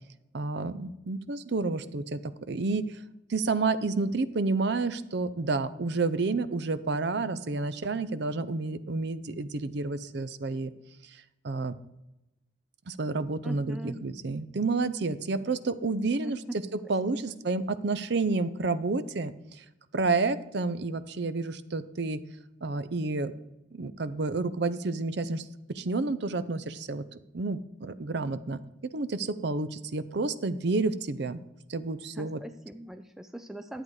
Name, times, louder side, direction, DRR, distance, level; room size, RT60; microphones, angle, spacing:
voice 1, 0.3-3.0 3.3-10.7 11.4-11.7 12.9-16.4 16.9-19.6 19.9-22.2 22.6-23.3 23.7-25.5 25.7-27.0 27.3-28.6 28.9-31.4 31.7-32.4, right 3 dB, 55° right, 14 dB, 0.6 m, -30 dB
voice 2, 13.4-14.0 16.2-16.6 17.1-17.3 32.1-33.8, right 1 dB, ahead, 8 dB, 0.4 m, -41 dB
11.0 x 8.0 x 4.7 m, 0.93 s
head